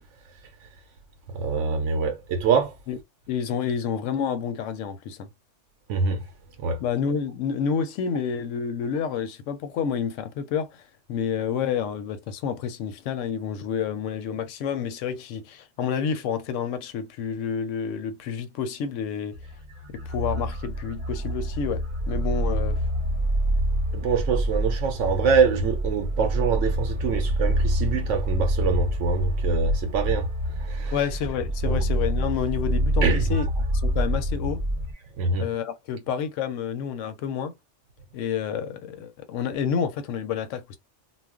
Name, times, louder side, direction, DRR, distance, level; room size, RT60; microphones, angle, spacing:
voice 1, 1.3-2.8 5.9-6.2 6.6-6.8 23.9-30.3 30.6-31.0 31.6-31.9 33.0-33.5 35.2-35.5, right 5 dB, 80° right, 0.9 m, -25 dB
voice 2, 3.3-5.3 6.8-10.8 11.1-19.4 19.9-22.9 30.9-33.5 33.8-34.6 35.4-37.5 38.1-40.8, left 7 dB, 85° left, 0.9 m, -29 dB
sound 1, 19.3-34.9, right 1 dB, 40° right, 0.8 m, -26 dB
2.3 x 2.1 x 3.5 m
omnidirectional pair, 1.3 m